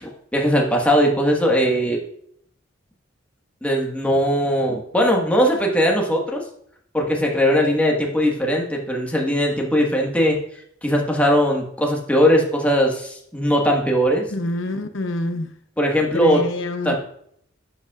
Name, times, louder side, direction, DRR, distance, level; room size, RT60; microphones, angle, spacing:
voice 1, 0.0-2.0 3.6-6.4 6.9-10.4 10.8-14.3 15.8-16.4 16.8-17.0, equal, 5° left, -1 dB, 1.5 m, -19 dB
voice 2, 14.3-15.5 16.1-16.9, left 1 dB, 75° left, 7 dB, 0.8 m, -26 dB
11.5 x 7.9 x 2.4 m, 0.67 s
head